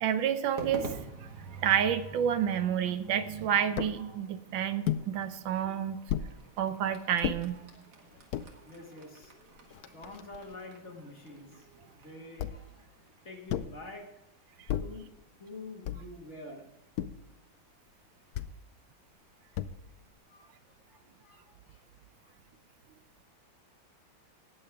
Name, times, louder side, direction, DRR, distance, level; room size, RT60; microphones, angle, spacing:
voice 1, 0.0-1.0 1.5-6.0 6.6-7.6 14.6-14.7, right 9 dB, 75° right, 11 dB, 1.4 m, -29 dB
Crowd / Fireworks, 0.6-15.0, right 3 dB, 55° right, 2.3 m, -49 dB
sound 1, 3.8-4.0 4.9-5.1 6.1-6.3 7.2-7.4 8.1-8.5 9.2-9.3 9.6-10.6 12.4-12.8 13.5-13.8 14.7-15.0 15.9-16.2 17.0-17.3 18.3-18.6 19.5-20.0, left 10 dB, 80° left, 0.8 m, -34 dB
voice 2, 8.7-9.3 9.9-11.7 11.9-12.8 13.2-14.1 14.8-15.1 15.4-16.7 20.3-20.5 20.9-21.8 22.2-22.3, left 2 dB, 35° left, 1 dB, 1.9 m, -47 dB
18.5 x 7.7 x 3.4 m, 0.93 s
omnidirectional pair, 2.2 m